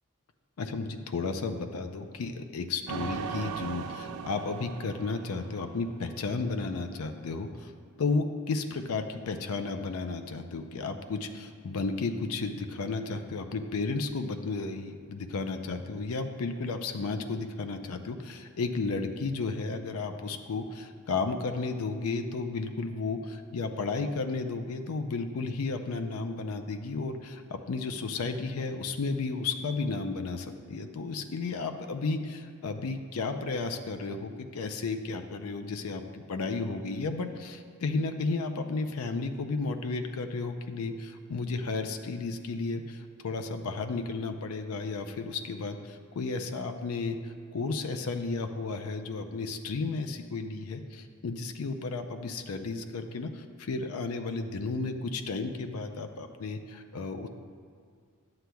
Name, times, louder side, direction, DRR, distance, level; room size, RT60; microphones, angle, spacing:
voice 1, 0.6-7.7 8.0-57.3, left 3 dB, 80° left, 7 dB, 0.5 m, -33 dB
sound 1, 2.9-6.3, right 6 dB, 80° right, 0.4 m, -38 dB
11.5 x 7.7 x 2.3 m, 2.2 s
head